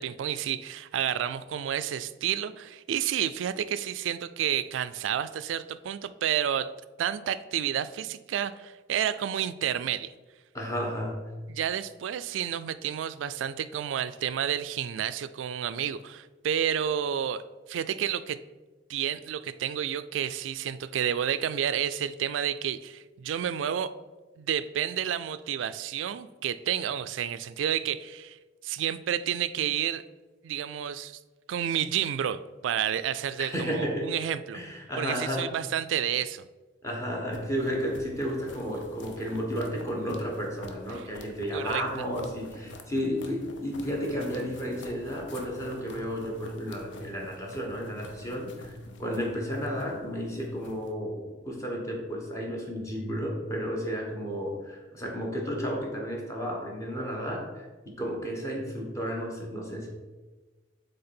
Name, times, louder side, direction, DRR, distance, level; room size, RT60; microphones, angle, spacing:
voice 1, 0.0-6.7 7.0-10.1 11.5-17.4 17.7-18.4 18.9-23.9 24.4-28.4 28.6-30.0 30.4-31.2 31.5-34.6 35.0-36.5 40.9-41.0 41.5-41.8, right 9 dB, 85° right, 14 dB, 0.3 m, -30 dB
voice 2, 10.5-11.3 33.4-35.5 36.8-48.7 49.0-59.9, equal, 15° left, -2 dB, 1.4 m, -32 dB
sound 1, 37.2-50.9, left 1 dB, 75° left, 0.7 m, -47 dB
7.8 x 3.4 x 4.3 m, 1.2 s
head